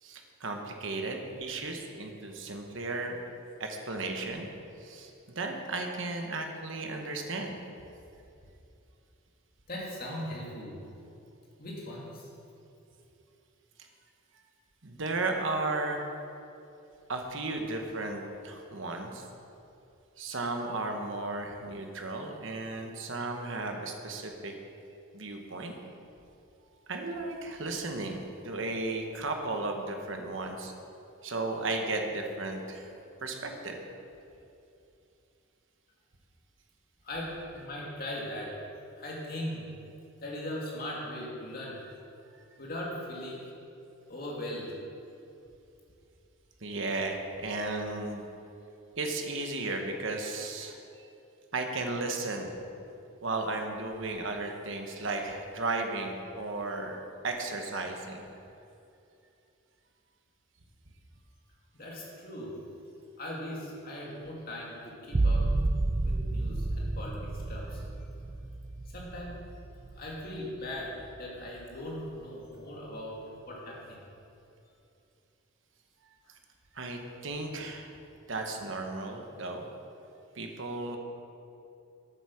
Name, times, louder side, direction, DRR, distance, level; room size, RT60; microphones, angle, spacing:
voice 1, 0.0-3.2 3.6-4.5 4.8-7.6 14.8-16.1 17.1-19.3 20.2-24.5 25.1-25.7 26.9-30.7 31.2-32.9 33.2-33.8 46.6-48.2 49.0-51.1 51.5-52.6 53.2-57.0 57.2-58.3 76.7-77.9 78.3-79.6 80.3-81.0, right 2 dB, 65° right, 3 dB, 1.1 m, -34 dB
voice 2, 9.7-10.8 11.6-12.3 37.0-38.7 39.0-39.8 40.2-41.9 42.6-43.5 44.1-44.8 61.7-62.6 63.2-65.5 66.0-67.8 68.9-69.5 70.0-74.0, left 1 dB, 45° left, -4 dB, 2.4 m, -39 dB
sound 1, 65.1-70.6 71.0-71.6, right 2 dB, 25° right, 0.3 m, -31 dB
9.0 x 8.4 x 6.3 m, 2.7 s
head